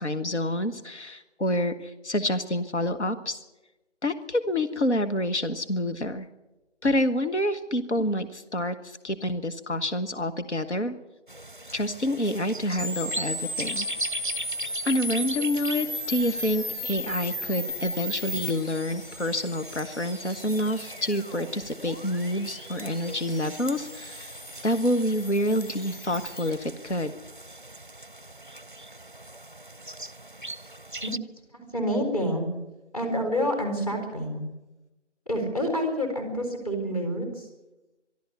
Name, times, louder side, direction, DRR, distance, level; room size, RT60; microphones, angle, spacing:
voice 1, 0.0-3.4 4.0-6.3 6.8-10.9 11.7-13.9 14.8-24.3 24.6-27.1, left 1 dB, 70° left, 8 dB, 1.4 m, -28 dB
sound 1, 11.3-31.2, right 1 dB, 45° right, 0.6 m, -40 dB
sound 2, 12.8-26.5, left 1 dB, 50° left, 2.4 m, -36 dB
voice 2, 31.5-32.5 32.9-34.5 35.3-37.5, equal, 30° left, 3 dB, 4.4 m, -28 dB
22.5 x 12.5 x 9.5 m, 1.0 s
figure-of-eight pair, 175°, 36 cm